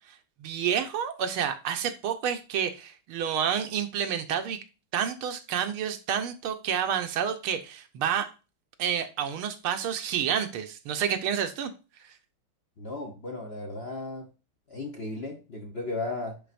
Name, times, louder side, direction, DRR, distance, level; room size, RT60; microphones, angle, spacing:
voice 1, 0.4-4.6 4.9-8.3 8.8-11.7, right 8 dB, 75° right, 1.7 m, -29 dB
voice 2, 12.8-14.3 14.7-16.4, left 2 dB, 45° left, 0.8 m, -35 dB
10.0 x 4.1 x 2.5 m
omnidirectional pair, 2.4 m